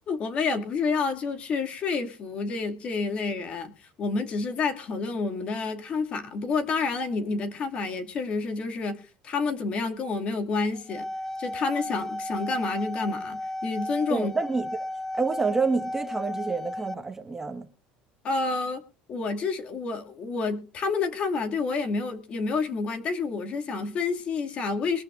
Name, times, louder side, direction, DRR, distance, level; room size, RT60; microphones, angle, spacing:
voice 1, 0.1-11.1 11.4-14.3 18.2-18.8 19.1-25.0, left 4 dB, 40° left, 2.3 m, -29 dB
sound 1, 10.7-17.0, left 1 dB, 10° left, 0.8 m, -34 dB
voice 2, 14.1-14.8 15.1-17.7, right 4 dB, 10° right, 1.5 m, -28 dB
22.5 x 13.5 x 2.5 m
cardioid pair, 145°, 3 cm